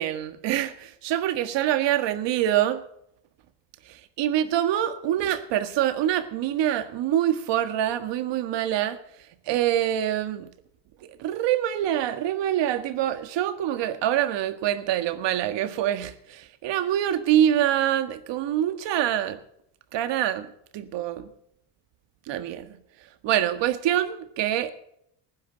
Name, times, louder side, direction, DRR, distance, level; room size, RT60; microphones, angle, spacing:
voice 1, 0.0-2.8 3.9-9.0 9.5-10.5 11.2-19.4 19.9-20.5 20.7-21.3 22.3-22.8 23.2-24.7, right 11 dB, 65° right, 1.7 m, -25 dB
19.5 x 12.5 x 4.0 m
cardioid pair, 135°, 47 cm